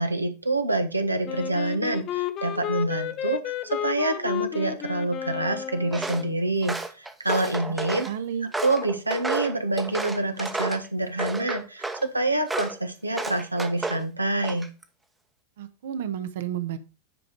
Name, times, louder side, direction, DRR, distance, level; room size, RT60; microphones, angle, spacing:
voice 1, 0.0-8.1 8.6-14.7, right 2 dB, 85° right, 8 dB, 1.3 m, -27 dB
Wind instrument woodwind instrument, 1.2-6.3, left 10 dB, 35° left, 0.8 m, -32 dB
Walk footsteps, 5.9-6.3 6.6-8.1 8.5-10.9 11.2-12.1 12.5-12.8 13.2-14.0 14.4-14.8, right 2 dB, 10° right, 1.0 m, -31 dB
voice 2, 8.0-8.5 15.6-16.8, right 9 dB, 55° right, 11 dB, 1.1 m, -31 dB
9.7 x 5.2 x 4.8 m, 0.30 s
figure-of-eight pair, 90°, 0 cm